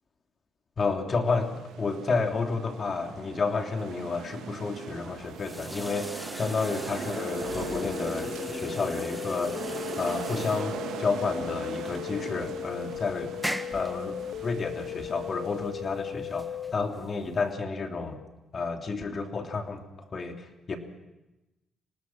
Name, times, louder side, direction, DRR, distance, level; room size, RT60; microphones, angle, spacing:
voice 1, 0.8-9.6 10.0-13.3 13.7-14.1 14.4-18.2 18.5-19.8 20.1-20.8, left 4 dB, 40° left, 4 dB, 3.1 m, -31 dB
sound 1, 1.2-15.7, right 7 dB, 90° right, 3.0 m, -40 dB
sound 2, 5.1-17.5, equal, ahead, 1.4 m, -40 dB
sound 3, 7.2-16.7, left 10 dB, 70° left, 0.8 m, -37 dB
25.0 x 19.0 x 6.1 m, 1.0 s
cardioid pair, 90°, 0 cm